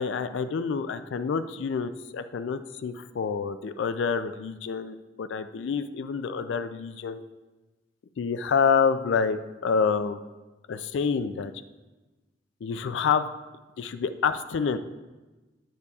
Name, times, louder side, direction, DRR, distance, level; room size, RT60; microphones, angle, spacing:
voice 1, 0.0-7.2 8.2-10.2 10.7-11.5 12.6-13.3 13.8-14.8, left 6 dB, 70° left, 10 dB, 0.4 m, -27 dB
9.2 x 8.3 x 2.4 m, 1.2 s
head